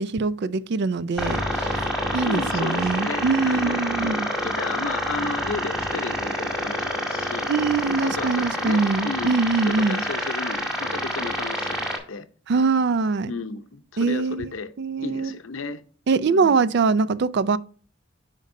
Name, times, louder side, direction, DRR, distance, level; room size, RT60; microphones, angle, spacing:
voice 1, 0.0-1.8 2.1-4.3 7.5-10.0 12.5-13.3 14.0-14.5 14.8-15.3 16.1-17.6, right 4 dB, 60° right, 0.4 m, -23 dB
sound 1, 1.2-12.0, equal, 5° right, 1.8 m, -27 dB
voice 2, 2.2-7.5 8.0-9.3 9.7-12.3 13.3-14.7 15.0-15.8 16.3-16.6, left 4 dB, 90° left, 0.7 m, -33 dB
9.1 x 5.3 x 2.6 m
head